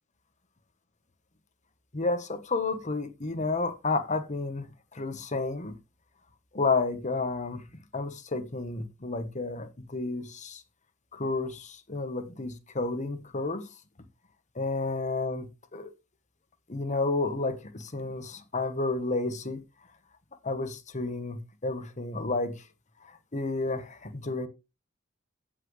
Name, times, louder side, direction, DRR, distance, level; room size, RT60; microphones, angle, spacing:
voice 1, 1.9-5.8 6.5-7.6 7.9-10.6 11.1-13.7 14.5-15.9 16.7-19.6 20.4-22.5 23.0-24.5, left 3 dB, 40° left, 1.3 m, -31 dB
16.0 x 5.9 x 3.3 m
head